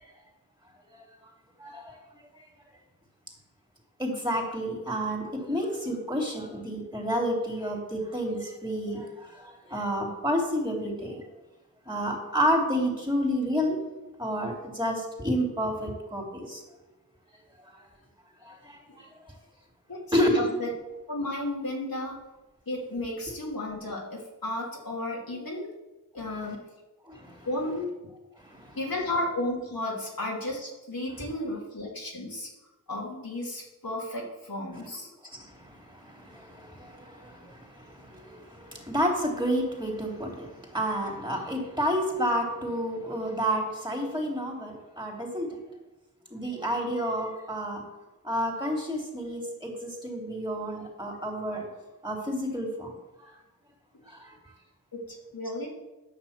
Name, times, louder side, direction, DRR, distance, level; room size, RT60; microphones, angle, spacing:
voice 1, 1.6-2.0 4.0-11.2 11.9-13.8 14.2-16.6 18.4-19.1 20.1-20.4 26.2-26.3 27.0-27.5 28.4-28.8 35.3-45.5 46.3-47.8 48.2-51.7 52.0-52.9 53.2-53.3 54.1-54.3, equal, 15° right, 0 dB, 3.4 m, -30 dB
voice 2, 20.4-20.7 21.1-22.2 22.7-25.7 26.1-26.6 27.5-27.9 28.8-32.5 32.9-35.1 54.9-55.7, left 1 dB, 85° left, -4 dB, 2.7 m, -33 dB
10.0 x 6.0 x 7.5 m, 1.1 s
wide cardioid pair, 40°, 34 cm